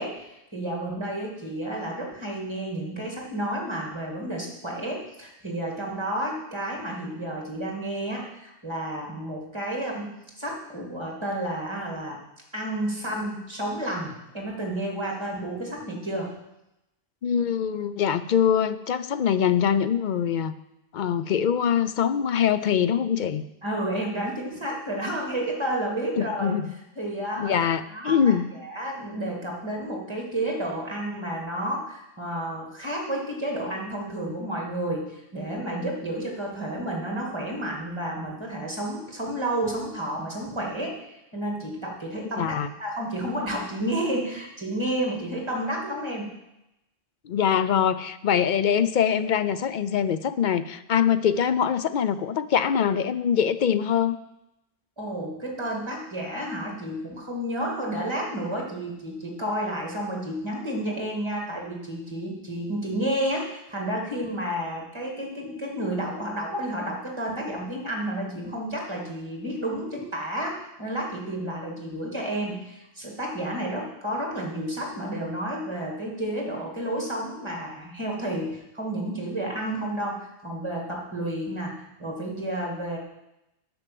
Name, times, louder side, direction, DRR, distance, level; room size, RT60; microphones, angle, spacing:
voice 1, 0.0-12.2 12.5-16.3 23.6-26.5 27.0-28.2 28.5-40.9 41.3-46.3 55.0-83.0, right 1 dB, 25° right, -1 dB, 2.4 m, -31 dB
voice 2, 17.2-20.5 20.9-23.4 26.2-26.7 27.4-28.5 42.4-42.7 47.2-54.2, left 8 dB, 55° left, 13 dB, 0.6 m, -23 dB
9.8 x 6.2 x 7.7 m, 0.89 s
omnidirectional pair, 1.1 m